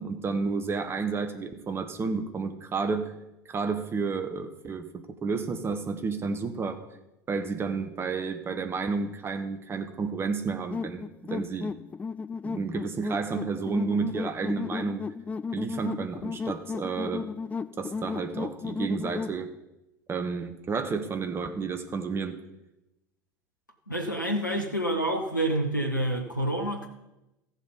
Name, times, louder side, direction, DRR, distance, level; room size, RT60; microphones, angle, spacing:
voice 1, 0.0-3.1 3.4-6.8 7.3-11.8 12.4-15.0 15.5-17.2 17.8-19.5 20.1-22.4, right 4 dB, 25° right, 7 dB, 1.2 m, -31 dB
sound 1, 10.7-19.4, left 5 dB, 15° left, 0.3 m, -34 dB
voice 2, 23.9-26.9, right 1 dB, 90° left, 3 dB, 1.0 m, -28 dB
14.5 x 7.6 x 5.3 m, 0.93 s
figure-of-eight pair, 75°, 10 cm